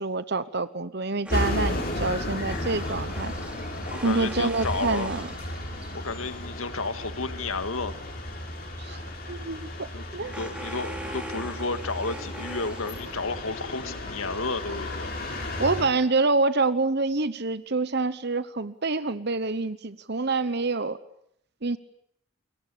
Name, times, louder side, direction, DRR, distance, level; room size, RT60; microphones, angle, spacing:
voice 1, 0.0-3.3 4.0-5.3 8.8-9.0 9.3-10.4 15.6-21.0 21.6-21.8, right 3 dB, 50° right, 14 dB, 1.0 m, -27 dB
sound 1, 1.3-15.9, left 1 dB, 45° left, 6.4 m, -34 dB
sound 2, 1.3-6.2 9.2-13.5, right 1 dB, 5° right, 2.7 m, -42 dB
voice 2, 3.9-5.1 5.9-7.9 9.9-15.1, left 3 dB, 75° left, 10 dB, 1.9 m, -32 dB
29.0 x 22.5 x 8.5 m, 0.71 s
head